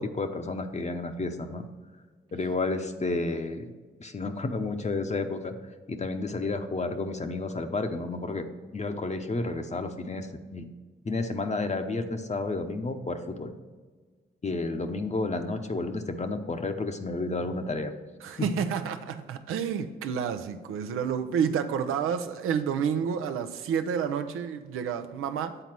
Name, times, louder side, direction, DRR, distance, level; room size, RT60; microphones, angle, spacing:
voice 1, 0.0-1.6 2.3-3.7 4.0-5.5 5.9-8.4 8.7-10.7 11.0-13.5 14.4-17.9 18.4-18.5, left 3 dB, 35° left, 0.8 m, -31 dB
voice 2, 18.2-25.6, right 7 dB, 85° right, 0.6 m, -29 dB
7.8 x 4.1 x 6.0 m
supercardioid pair, 50°, 21 cm